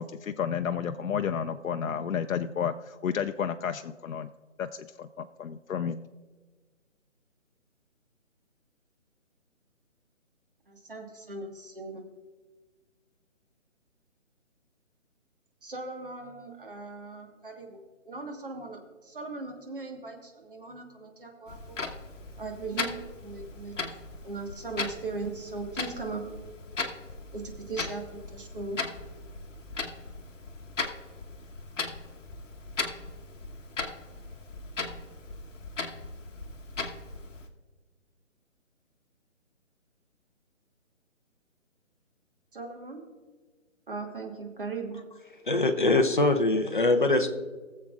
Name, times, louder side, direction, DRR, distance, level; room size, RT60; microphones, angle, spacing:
voice 1, 0.0-4.3 4.6-6.0, left 7 dB, 85° left, 8 dB, 0.6 m, -31 dB
voice 2, 10.7-12.0 15.6-17.8 18.0-21.8 22.4-23.8 24.2-26.3 27.3-28.8 42.5-43.0 43.9-45.1, right 3 dB, 45° right, 3 dB, 1.5 m, -38 dB
Clock, 21.5-37.5, left 3 dB, 70° left, 1.2 m, -38 dB
voice 3, 45.5-47.3, left 2 dB, 40° left, 6 dB, 0.7 m, -23 dB
19.0 x 7.4 x 2.4 m, 1.4 s
hypercardioid pair, 180°, 39 cm